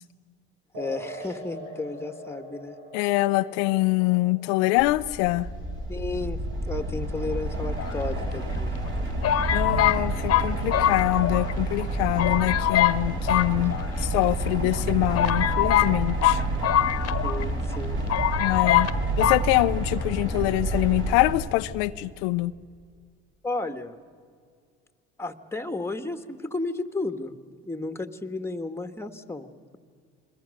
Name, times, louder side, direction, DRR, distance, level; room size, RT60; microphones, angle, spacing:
sound 1, 0.7-7.8, equal, 75° right, 4.8 m, -43 dB
voice 1, 0.8-2.8 5.9-6.4 6.7-8.8 9.9-10.0 17.2-18.0 23.4-23.9 25.2-27.4 27.6-29.5, left 3 dB, 10° left, 8 dB, 1.6 m, -33 dB
voice 2, 2.9-5.5 9.5-16.4 18.4-18.9 19.2-22.5, left 19 dB, 80° left, 11 dB, 0.6 m, -24 dB
sound 2, 4.8-21.3, right 2 dB, 40° right, 5.4 m, -29 dB
sound 3, 7.8-8.5 9.2-11.5 11.8-11.9 12.2-13.0 13.3-14.2 14.8-14.9 15.1-17.4 17.7-17.8 18.1-18.9 19.2-19.4, left 11 dB, 55° left, 1.2 m, -23 dB
28.0 x 21.5 x 6.6 m, 2.1 s
supercardioid pair, 80°, 30 cm